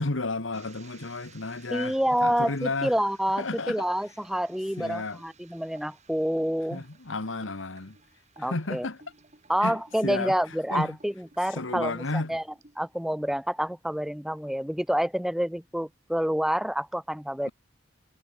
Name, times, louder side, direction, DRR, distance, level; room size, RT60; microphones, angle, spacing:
voice 1, 0.0-3.0 3.4-3.9 4.8-5.2 6.7-8.0 8.4-9.0 9.6-10.4 10.7-11.0 11.5-12.4, left 3 dB, 85° left, 1.6 m, -32 dB
sound 1, 0.5-13.3 13.7-14.0 14.3-14.7, right 4 dB, 40° right, 4.2 m, -58 dB
voice 2, 1.7-6.8 8.4-8.9 9.5-12.4 12.8-17.5, equal, ahead, 0.6 m, -28 dB
head